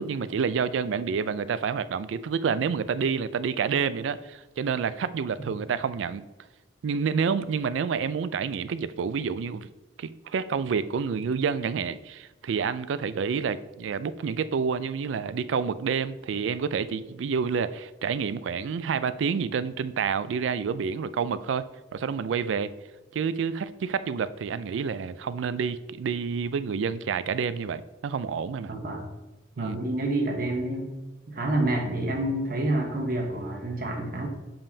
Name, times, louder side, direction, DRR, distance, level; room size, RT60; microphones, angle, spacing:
voice 1, 0.0-6.2 6.8-9.7 10.0-21.7 21.9-22.7 23.1-28.7 29.6-29.8, right 6 dB, 85° right, 15 dB, 0.3 m, -28 dB
voice 2, 28.7-29.0 29.6-30.9 31.3-34.3, right 1 dB, 50° right, 2 dB, 1.1 m, -28 dB
7.0 x 5.4 x 2.7 m, 1.1 s
head